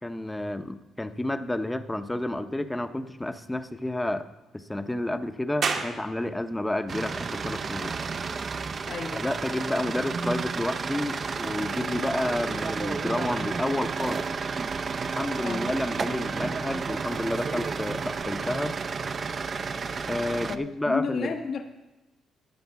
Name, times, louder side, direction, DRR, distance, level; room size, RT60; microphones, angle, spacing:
voice 1, 0.0-4.3 4.5-8.0 9.1-14.3 15.0-18.7 20.1-21.4, left 1 dB, 10° left, 10 dB, 0.7 m, -30 dB
sound 1, 5.6-18.7, right 5 dB, 60° right, 1.3 m, -41 dB
sound 2, 6.9-20.6, right 5 dB, 40° right, 0.5 m, -31 dB
voice 2, 8.9-9.6 15.4-15.7 20.5-21.6, left 5 dB, 60° left, 5 dB, 1.0 m, -32 dB
13.0 x 5.2 x 7.0 m, 1.0 s
cardioid pair, 90°, 0 cm